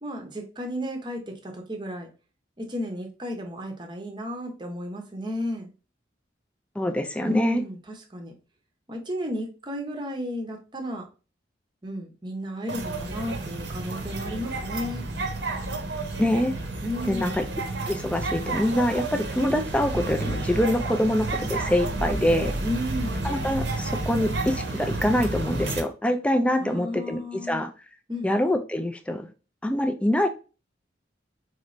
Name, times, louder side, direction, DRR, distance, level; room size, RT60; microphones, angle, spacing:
voice 1, 0.0-2.1 2.6-5.7 7.2-8.3 8.9-11.1 11.8-15.1 16.8-17.4 22.6-23.3 26.6-27.6 28.1-28.3, left 1 dB, 25° right, 2 dB, 0.7 m, -33 dB
voice 2, 6.8-7.6 16.2-16.5 17.0-17.4 17.9-22.5 23.2-27.7 28.2-29.3 29.6-30.3, left 1 dB, 5° left, 8 dB, 0.3 m, -25 dB
sound 1, 12.7-25.8, right 2 dB, 65° right, 0.8 m, -31 dB
4.2 x 3.0 x 2.5 m, 0.33 s
head